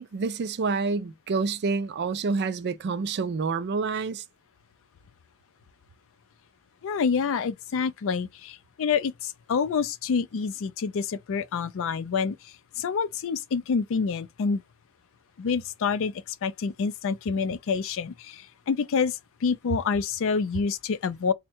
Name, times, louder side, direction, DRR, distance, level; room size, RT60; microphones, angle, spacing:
voice 1, 0.0-4.2, right 4 dB, 50° right, 0.4 m, -28 dB
voice 2, 6.8-14.6 15.4-21.3, left 5 dB, 60° left, 0.4 m, -27 dB
3.5 x 2.1 x 4.3 m
head